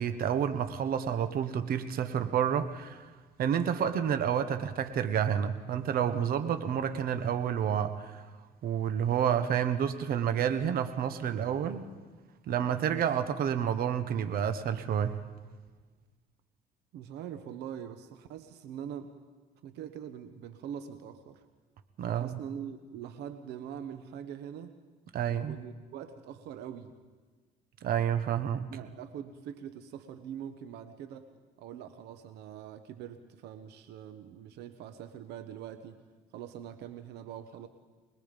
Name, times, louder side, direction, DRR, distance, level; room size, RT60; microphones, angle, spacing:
voice 1, 0.0-3.0 3.4-8.2 8.6-11.8 12.5-15.2 22.0-22.4 25.1-25.6 27.8-28.7, right 8 dB, 60° right, 9 dB, 1.3 m, -29 dB
voice 2, 16.9-19.1 19.6-21.4 22.1-24.8 25.3-26.9 28.7-31.3 31.6-36.0 36.3-37.7, right 9 dB, 80° right, 9 dB, 1.2 m, -43 dB
24.0 x 20.5 x 5.3 m, 1.3 s
cardioid pair, 110°, 17 cm